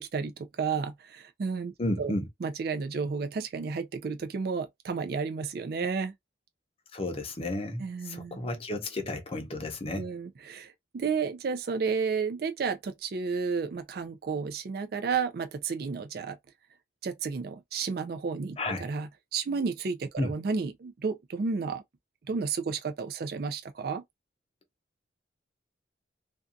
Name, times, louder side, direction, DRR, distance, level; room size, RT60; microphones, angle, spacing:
voice 1, 0.0-2.1 2.4-6.1 7.8-8.4 10.0-16.4 17.0-21.8 22.3-24.0, right 5 dB, 55° right, 0.4 m, -32 dB
voice 2, 1.8-2.2 6.9-10.1 18.6-18.9 20.2-20.3, left 1 dB, 30° left, 0.6 m, -32 dB
2.5 x 2.3 x 2.5 m
head